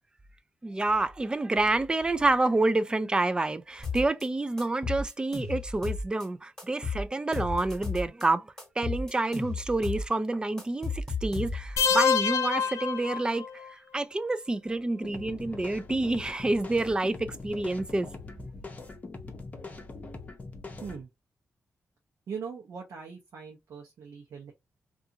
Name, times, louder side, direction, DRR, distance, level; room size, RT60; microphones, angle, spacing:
voice 1, 0.6-8.4 8.8-13.4 13.9-18.1, right 2 dB, 15° right, 0.3 m, -28 dB
sound 1, 3.8-4.2 4.6-6.2 6.6-8.2 8.6-10.1 10.3-11.8, left 4 dB, 10° left, 1.2 m, -34 dB
sound 2, 11.8-13.7, left 7 dB, 85° left, 0.4 m, -26 dB
sound 3, 15.0-21.0, left 3 dB, 30° left, 0.7 m, -42 dB
voice 2, 22.3-24.5, right 6 dB, 80° right, 0.7 m, -40 dB
2.5 x 2.4 x 2.7 m
cardioid pair, 100°, 5 cm